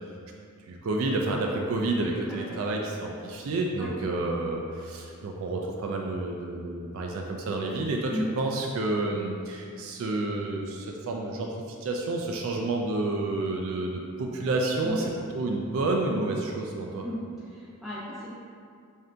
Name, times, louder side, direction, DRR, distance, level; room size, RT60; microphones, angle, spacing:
voice 1, 0.7-17.0, right 2 dB, 65° right, 0 dB, 0.3 m, -30 dB
voice 2, 2.0-2.4 3.8-3.9 8.1-8.3 14.8-15.1 17.0-17.2 17.5-18.3, left 1 dB, ahead, -11 dB, 0.9 m, -34 dB
3.8 x 2.7 x 3.3 m, 2.3 s
head